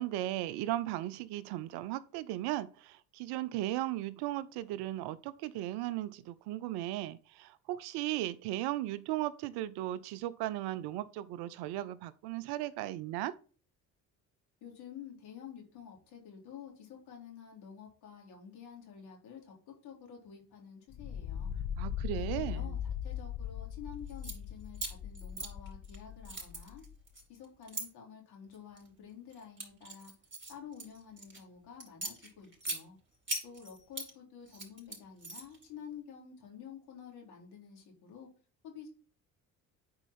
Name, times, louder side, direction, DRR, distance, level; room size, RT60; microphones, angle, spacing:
voice 1, 0.0-13.3 21.8-22.8, right 15 dB, 75° right, 0.7 m, -36 dB
voice 2, 14.6-21.5 22.1-26.8 27.3-30.1 30.5-33.0 33.4-38.3 38.6-38.9, left 7 dB, 70° left, 3.5 m, -50 dB
sound 1, 20.9-27.0, left 9 dB, 50° left, 0.7 m, -39 dB
sound 2, 24.1-24.4 24.7-26.0 26.2-27.9 28.5-28.9 29.3-31.4 31.8-32.8 33.3-34.1 34.5-35.6, right 2 dB, 30° right, 4.3 m, -40 dB
9.7 x 4.7 x 4.3 m
hypercardioid pair, 60°, 40 cm